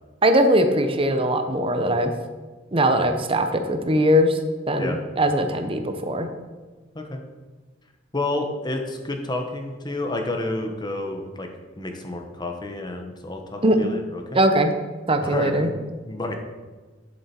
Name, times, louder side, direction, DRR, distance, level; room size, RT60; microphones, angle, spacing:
voice 1, 0.2-2.1 2.7-4.4 4.7-6.3 13.6-13.8 14.3-14.7 15.1-15.7, equal, 30° right, 6 dB, 0.8 m, -20 dB
voice 2, 8.1-11.5 11.8-14.4 15.2-15.8 16.1-16.4, left 2 dB, 25° left, 4 dB, 1.1 m, -30 dB
10.5 x 7.5 x 4.5 m, 1.3 s
head